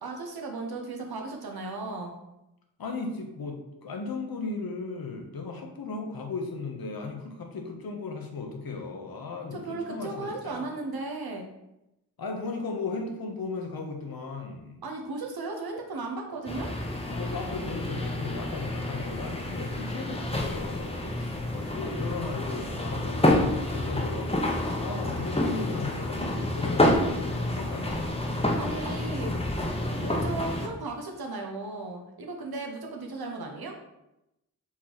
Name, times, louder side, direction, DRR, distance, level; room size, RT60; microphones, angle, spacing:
voice 1, 0.0-2.1 9.5-11.4 14.8-16.7 28.6-29.4 30.0-33.8, right 3 dB, 75° right, 2 dB, 0.9 m, -36 dB
voice 2, 2.8-10.7 12.2-14.8 17.1-24.4 24.8-28.2, left 4 dB, 70° left, 3 dB, 0.9 m, -36 dB
sound 1, 16.5-30.7, left 1 dB, 15° left, 0.8 m, -29 dB
4.4 x 3.0 x 3.9 m, 0.90 s
cardioid pair, 50°, 37 cm